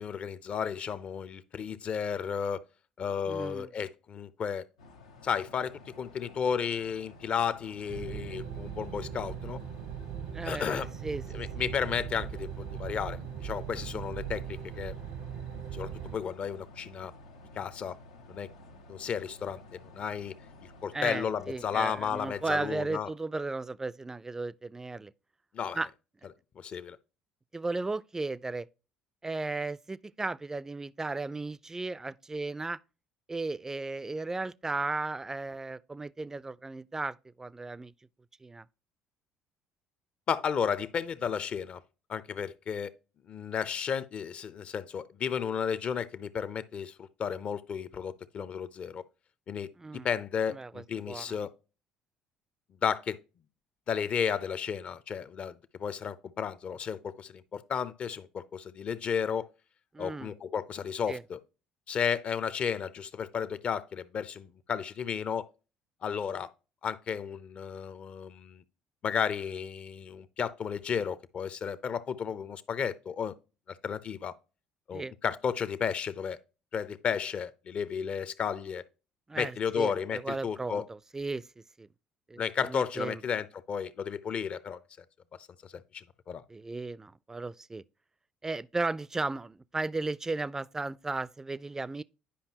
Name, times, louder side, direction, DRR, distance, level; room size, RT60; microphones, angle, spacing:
voice 1, 0.0-2.6 3.0-4.7 5.2-9.6 10.4-10.9 11.3-14.9 15.7-17.1 17.5-18.0 18.3-18.5 18.9-20.3 20.8-23.1 25.5-25.8 26.6-27.0 40.3-41.8 42.1-42.9 43.3-49.0 49.5-49.7 50.0-51.5 52.8-53.2 53.9-59.5 60.0-61.4 61.9-65.5 66.0-66.5 66.8-68.6 69.0-73.3 73.7-74.3 74.9-76.4 76.7-78.8 79.3-80.9 82.4-84.8 85.4-86.4, left 7 dB, 45° left, 0.6 m, -33 dB
voice 2, 3.3-3.7 10.3-11.2 11.6-11.7 20.9-25.1 25.8-25.9 27.5-28.7 29.2-32.8 33.3-37.9 38.4-38.7 49.8-50.1 50.5-51.4 59.9-60.3 61.1-61.2 74.9-75.1 79.3-81.5 81.8-81.9 82.3-83.2 86.5-87.8 88.4-92.0, right 3 dB, 20° right, 0.4 m, -35 dB
sound 1, 4.8-22.5, left 2 dB, 85° left, 0.8 m, -52 dB
sound 2, 7.9-16.2, right 9 dB, 65° right, 0.6 m, -39 dB
10.0 x 5.3 x 2.9 m
hypercardioid pair, 60°, 3 cm